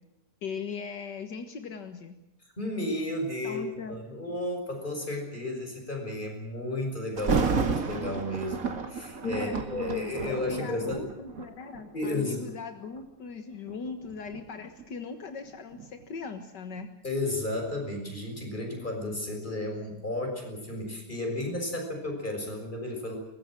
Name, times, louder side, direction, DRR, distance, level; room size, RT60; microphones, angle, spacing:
voice 1, 0.4-2.2 3.4-4.0 9.2-16.9, left 5 dB, 75° left, 7 dB, 2.1 m, -39 dB
voice 2, 2.6-11.1 11.9-12.5 17.0-23.2, left 1 dB, 25° left, 3 dB, 6.6 m, -33 dB
Thunder, 7.2-12.1 12.8-13.0 13.7-16.5 16.8-16.9, right 5 dB, 50° right, 2.3 m, -32 dB
23.0 x 20.5 x 7.6 m, 0.90 s
omnidirectional pair, 1.9 m